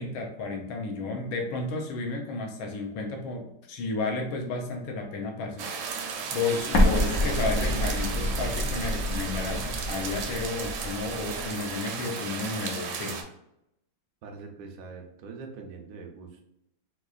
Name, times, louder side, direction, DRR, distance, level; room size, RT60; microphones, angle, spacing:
voice 1, 0.0-13.2, left 3 dB, 80° left, 2 dB, 1.5 m, -32 dB
sound 1, 5.6-13.2, right 6 dB, 90° right, 1.4 m, -35 dB
Explosion, 6.7-11.5, left 1 dB, 65° left, 0.9 m, -27 dB
voice 2, 14.2-16.4, right 4 dB, 70° right, 2 dB, 0.8 m, -43 dB
4.5 x 2.3 x 2.4 m, 0.83 s
omnidirectional pair, 2.1 m